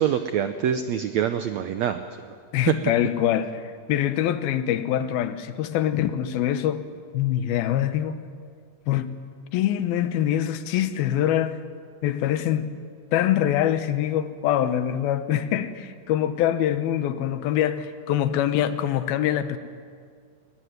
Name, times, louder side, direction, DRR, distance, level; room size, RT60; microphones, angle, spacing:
voice 1, 0.0-2.0, right 9 dB, 85° right, 1.5 m, -25 dB
voice 2, 2.5-3.6 3.9-6.9 7.1-8.2 8.9-9.2 9.5-11.6 12.0-12.8 13.1-19.6, left 11 dB, 85° left, 2.9 m, -24 dB
21.5 x 20.0 x 9.4 m
omnidirectional pair, 4.2 m